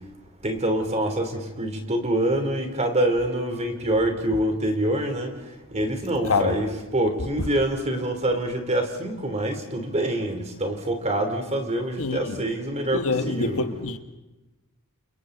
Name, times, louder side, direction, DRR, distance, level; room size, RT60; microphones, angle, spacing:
voice 1, 0.4-5.3 5.7-13.6, right 1 dB, 30° right, 3.7 m, -25 dB
voice 2, 6.2-6.7 12.0-12.5 12.9-14.0, left 3 dB, 65° left, 1.6 m, -26 dB
30.0 x 29.0 x 4.2 m
head